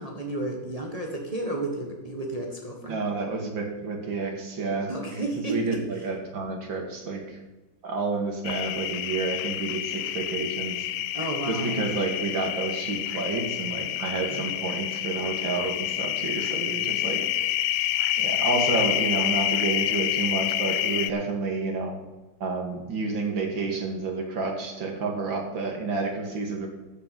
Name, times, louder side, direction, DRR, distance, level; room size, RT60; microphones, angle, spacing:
voice 1, 0.0-3.0 4.9-5.6 11.1-11.8 14.3-14.6, right 2 dB, 20° right, 0 dB, 1.6 m, -32 dB
voice 2, 2.8-4.9 5.5-7.4 7.8-10.9 11.5-17.2 18.2-21.9 22.4-26.7, right 3 dB, 85° right, 2 dB, 2.9 m, -30 dB
sound 1, 8.4-21.1, left 12 dB, 75° left, 1.1 m, -28 dB
13.0 x 7.9 x 5.7 m, 1.1 s
omnidirectional pair, 2.0 m